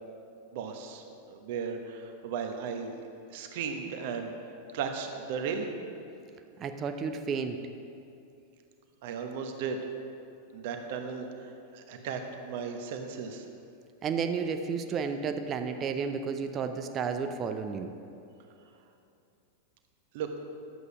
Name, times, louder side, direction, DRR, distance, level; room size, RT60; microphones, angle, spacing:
voice 1, 0.5-4.3 4.7-5.7 9.0-9.8 10.5-11.3 11.7-13.4 20.1-20.5, right 6 dB, 50° right, 5 dB, 1.1 m, -36 dB
voice 2, 6.6-7.6 14.0-17.9, right 6 dB, 30° right, 7 dB, 0.7 m, -32 dB
11.5 x 8.2 x 5.0 m, 2.6 s
figure-of-eight pair, 90°, 0 cm